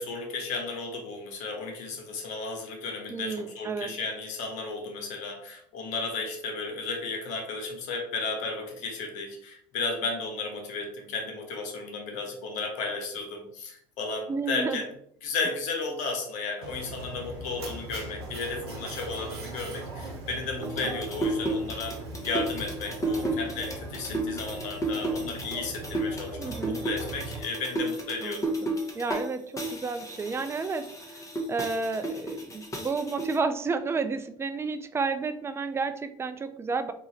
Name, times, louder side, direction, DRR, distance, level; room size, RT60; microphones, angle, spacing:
voice 1, 0.0-14.9 15.2-22.0 22.2-28.4, left 3 dB, 65° left, 3 dB, 1.0 m, -34 dB
voice 2, 3.1-3.9 14.3-14.8 26.4-26.8 28.2-31.2 31.5-36.9, right 4 dB, 20° right, 10 dB, 0.4 m, -31 dB
Mechanisms, 16.6-27.4, right 2 dB, 90° right, 0.7 m, -39 dB
sound 1, 20.6-29.3 29.6-33.4, right 1 dB, 25° left, 1.0 m, -32 dB
2.8 x 2.4 x 4.1 m, 0.67 s
hypercardioid pair, 70°, 13 cm